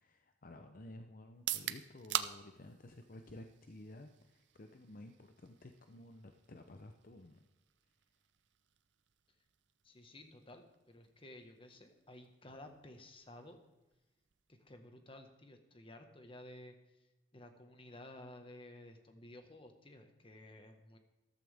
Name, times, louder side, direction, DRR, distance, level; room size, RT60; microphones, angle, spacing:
voice 1, 0.0-7.4, left 1 dB, 50° left, 6 dB, 0.7 m, -53 dB
sound 1, 1.3-15.2, right 11 dB, 85° right, 0.6 m, -47 dB
voice 2, 9.8-13.6 14.5-16.8 17.3-21.0, left 1 dB, 30° left, 6 dB, 1.5 m, -54 dB
14.0 x 13.0 x 3.5 m, 1.0 s
head